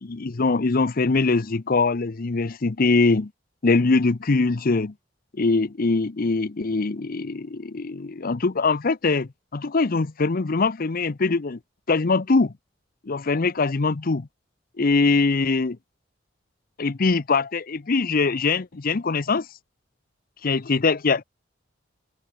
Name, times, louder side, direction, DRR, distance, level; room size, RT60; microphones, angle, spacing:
voice 1, 0.0-3.3 3.6-4.9 5.4-11.6 11.9-12.5 13.1-14.3 14.8-15.8 16.8-19.5 20.4-21.2, left 3 dB, 50° left, 0.7 m, -22 dB
open air
head